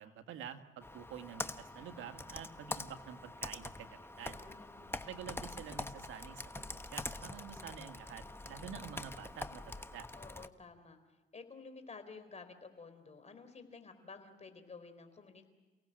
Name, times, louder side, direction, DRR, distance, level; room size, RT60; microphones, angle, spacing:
voice 1, 0.0-4.4 5.0-10.1, right 8 dB, 85° right, 7 dB, 1.7 m, -48 dB
Computer keyboard, 0.8-10.5, left 2 dB, 10° left, 1.1 m, -45 dB
voice 2, 4.4-5.1 10.1-11.0 11.3-15.5, left 4 dB, 35° left, 9 dB, 4.0 m, -52 dB
29.0 x 18.0 x 7.7 m, 1.3 s
cardioid pair, 90°, 20 cm